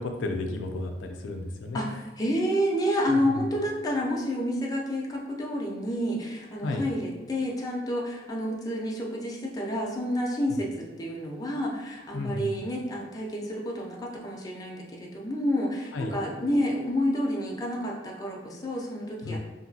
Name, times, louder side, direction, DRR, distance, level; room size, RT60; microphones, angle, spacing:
voice 1, 0.0-1.9 3.1-3.5 6.6-6.8 10.5-10.6 12.1-12.6 15.9-16.1 19.2-19.4, left 2 dB, 85° left, 4 dB, 0.4 m, -33 dB
voice 2, 1.7-19.4, equal, 20° left, -2 dB, 0.4 m, -29 dB
2.8 x 2.6 x 2.7 m, 1.1 s
head